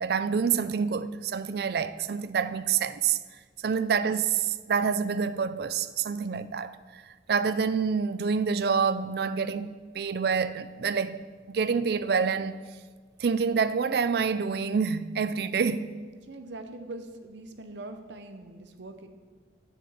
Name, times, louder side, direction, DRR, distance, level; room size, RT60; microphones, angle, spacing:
voice 1, 0.0-3.2 3.6-7.0 7.3-9.7 9.9-12.6 13.2-15.9, right 6 dB, 60° right, 0.4 m, -27 dB
voice 2, 16.3-19.1, right 2 dB, 75° right, 0.8 m, -42 dB
7.1 x 6.1 x 7.2 m
head